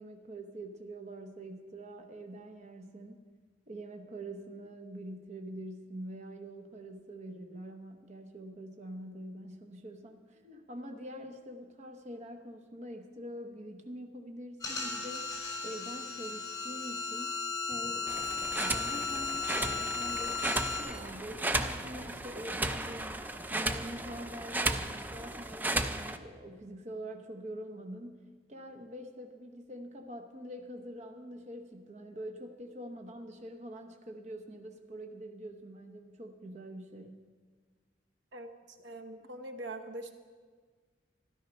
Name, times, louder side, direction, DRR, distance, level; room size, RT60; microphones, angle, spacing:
voice 1, 0.0-3.2 3.7-15.3 15.6-17.3 17.7-28.2 28.5-37.2, right 1 dB, 40° right, 4 dB, 0.8 m, -45 dB
sound 1, 14.6-20.8, left 4 dB, 20° left, 2.9 m, -36 dB
sound 2, 18.1-26.2, right 2 dB, 10° right, 0.4 m, -35 dB
voice 2, 38.3-40.1, right 1 dB, 75° right, 5 dB, 1.0 m, -43 dB
13.0 x 12.5 x 5.2 m, 1.5 s
head